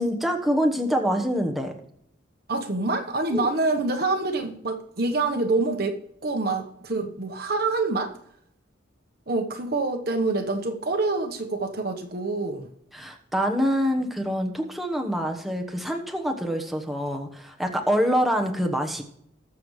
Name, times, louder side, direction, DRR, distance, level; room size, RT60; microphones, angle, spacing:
voice 1, 0.0-1.7 3.3-3.5 12.9-19.0, equal, ahead, 1.1 m, -25 dB
voice 2, 2.5-8.1 9.3-12.7, right 3 dB, 55° right, 1.2 m, -26 dB
20.0 x 7.0 x 3.2 m
head